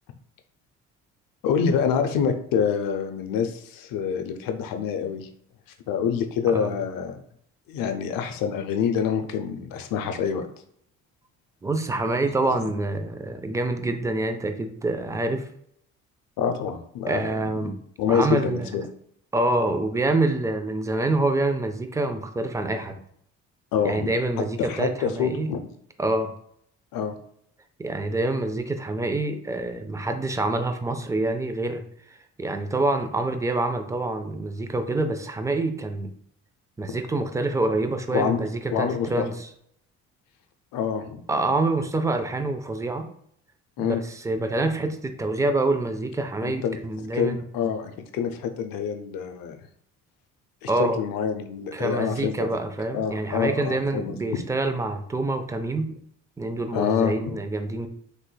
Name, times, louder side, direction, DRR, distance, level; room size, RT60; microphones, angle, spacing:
voice 1, 1.4-5.3 5.9-7.2 7.7-10.4 16.4-17.3 17.6-17.7 18.0-18.8 23.7-24.1 24.6-25.7 26.9-27.1 38.1-38.4 38.7-39.1 40.7-41.2 43.8-44.0 46.4-46.8 47.1-49.6 50.6-52.5 52.9-54.4 56.7-57.1, left 7 dB, 65° left, 7 dB, 0.6 m, -26 dB
voice 2, 11.6-15.5 17.1-17.8 18.1-18.7 19.3-23.0 23.8-25.5 26.0-26.3 27.8-31.8 32.4-36.1 36.8-39.5 41.3-43.1 43.8-47.7 50.7-51.0 51.7-56.0 56.4-57.9, right 2 dB, 10° right, 7 dB, 0.4 m, -26 dB
3.2 x 3.0 x 2.2 m, 0.67 s
hypercardioid pair, 50°, 37 cm